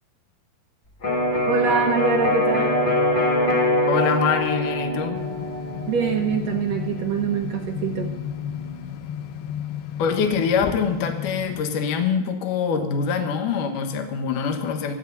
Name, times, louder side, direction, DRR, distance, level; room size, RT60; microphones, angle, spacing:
Electric guitar, 1.0-8.8, left 1 dB, 30° left, 2.0 m, -24 dB
voice 1, 1.5-2.8 5.9-8.1, right 6 dB, 75° right, 3 dB, 1.5 m, -24 dB
voice 2, 3.9-5.3 10.0-14.9, left 6 dB, 65° left, 5 dB, 2.7 m, -24 dB
sound 1, 5.1-11.6, left 9 dB, 80° left, 2.9 m, -33 dB
25.0 x 9.3 x 4.1 m, 1.2 s
omnidirectional pair, 4.5 m